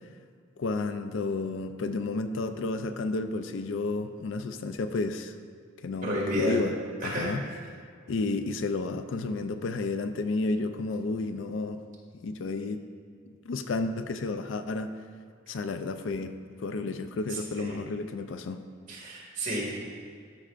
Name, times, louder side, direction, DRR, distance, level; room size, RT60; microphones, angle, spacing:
voice 1, 0.6-5.3 5.8-6.7 7.0-7.4 8.1-11.8 12.1-12.8 13.4-14.9 15.5-16.3 16.6-18.6, left 3 dB, 65° left, 9 dB, 0.4 m, -31 dB
voice 2, 6.0-6.6 7.0-7.3 17.3-17.8 18.9-19.8, right 1 dB, 40° right, -5 dB, 2.0 m, -31 dB
13.0 x 5.6 x 2.5 m, 2.2 s
head